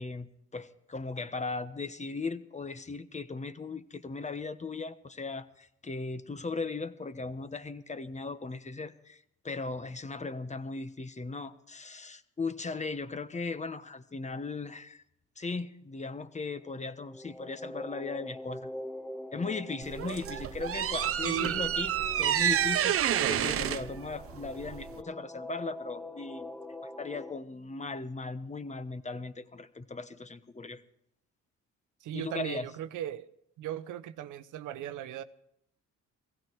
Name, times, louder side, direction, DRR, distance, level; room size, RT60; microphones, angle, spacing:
voice 1, 0.0-15.0 15.4-18.7 19.3-26.6 26.8-30.8 32.1-32.7, left 3 dB, 25° left, 1.1 m, -38 dB
sound 1, 16.6-27.3, left 1 dB, 5° left, 1.0 m, -44 dB
sound 2, 19.8-25.0, right 10 dB, 50° right, 0.6 m, -29 dB
voice 2, 21.2-21.7 32.0-33.3 33.6-35.2, right 10 dB, 85° right, 0.9 m, -37 dB
17.0 x 16.0 x 4.6 m
cardioid pair, 90°, 30 cm